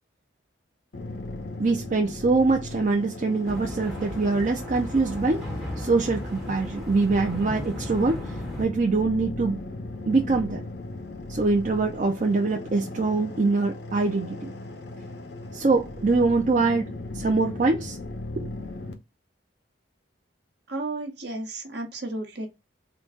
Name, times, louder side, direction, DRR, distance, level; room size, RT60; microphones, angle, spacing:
sound 1, 0.9-18.9, left 2 dB, 60° left, 0.7 m, -38 dB
voice 1, 1.6-5.4 5.8-8.3 8.6-9.6 10.1-10.6 11.3-14.5 15.5-18.0 18.3-18.5, right 3 dB, 40° right, 0.5 m, -24 dB
sound 2, 3.4-8.6, equal, ahead, 1.2 m, -36 dB
voice 2, 20.7-22.5, right 2 dB, 60° right, 1.1 m, -33 dB
3.8 x 2.3 x 3.7 m
head